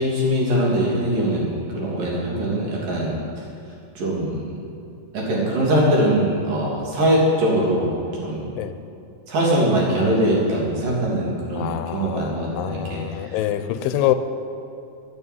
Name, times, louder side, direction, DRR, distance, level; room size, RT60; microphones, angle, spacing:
voice 1, 0.0-3.4 4.0-4.5 5.1-7.9 8.2-8.5 9.3-13.4, right 1 dB, 75° right, -4 dB, 4.8 m, -22 dB
voice 2, 11.6-14.1, left 13 dB, 85° left, 10 dB, 2.4 m, -25 dB
11.5 x 9.7 x 9.4 m, 2.6 s
omnidirectional pair, 3.9 m